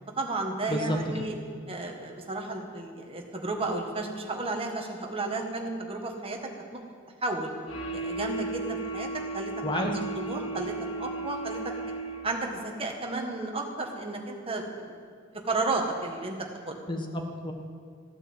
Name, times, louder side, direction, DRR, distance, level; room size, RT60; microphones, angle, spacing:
voice 1, 0.2-1.3 1.7-6.4 6.7-6.8 7.2-7.5 7.9-9.1 9.3-10.7 11.0-11.6 12.2-15.0 15.4-16.4 16.7-16.8, right 2 dB, 30° right, 2 dB, 1.6 m, -32 dB
voice 2, 0.7-1.2 9.6-10.0 16.9-17.5, equal, 25° left, 3 dB, 1.5 m, -30 dB
sound 1, 7.7-12.5, right 3 dB, 70° left, 1.8 m, -35 dB
15.0 x 9.0 x 7.9 m, 2.1 s
head